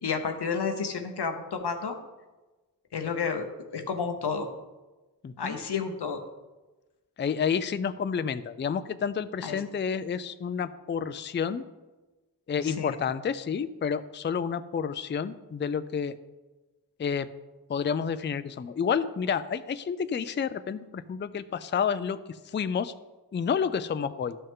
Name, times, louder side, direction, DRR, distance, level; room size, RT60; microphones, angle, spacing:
voice 1, 0.0-2.0 2.9-3.5 3.7-4.5 5.4-6.2 9.4-9.6 12.6-13.0, left 5 dB, 90° left, 5 dB, 0.9 m, -31 dB
voice 2, 5.2-5.6 7.2-11.6 12.5-16.2 17.0-17.3 17.7-22.9 23.3-24.4, left 7 dB, 30° left, 12 dB, 0.4 m, -30 dB
12.0 x 5.5 x 3.7 m, 1.2 s
wide cardioid pair, 60°, 39 cm